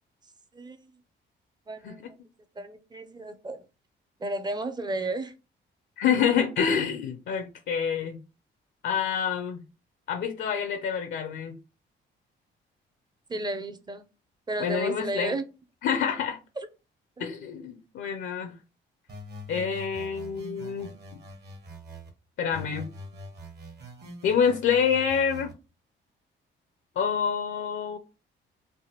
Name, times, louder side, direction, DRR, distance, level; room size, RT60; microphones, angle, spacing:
voice 1, 1.7-2.0 2.6-3.6 4.2-5.3 13.3-14.0 14.5-15.4 17.2-17.3, right 2 dB, 20° right, 0.4 m, -33 dB
voice 2, 6.0-8.2 8.8-9.6 10.1-11.6 14.6-15.3 15.8-16.4 17.2-18.6 19.5-20.9 22.4-22.9 24.2-25.5 27.0-28.0, left 7 dB, 70° left, 0.5 m, -27 dB
sound 1, 19.1-22.1 22.5-25.5, equal, 55° right, 1.0 m, -44 dB
3.3 x 2.2 x 2.8 m
cardioid pair, 90°, 20 cm